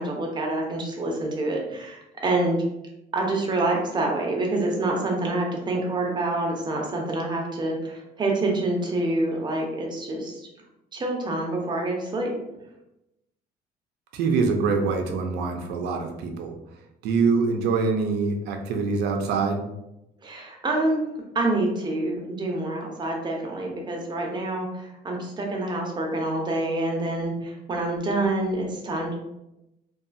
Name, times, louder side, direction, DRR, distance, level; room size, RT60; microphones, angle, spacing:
voice 1, 0.0-2.6 3.1-10.5 10.9-12.3 20.2-21.1 21.3-29.2, right 2 dB, 25° right, 0 dB, 0.7 m, -27 dB
voice 2, 14.1-16.6 17.0-19.6, right 4 dB, 80° right, 4 dB, 0.5 m, -24 dB
2.6 x 2.3 x 2.5 m, 0.87 s
cardioid pair, 110°, 17 cm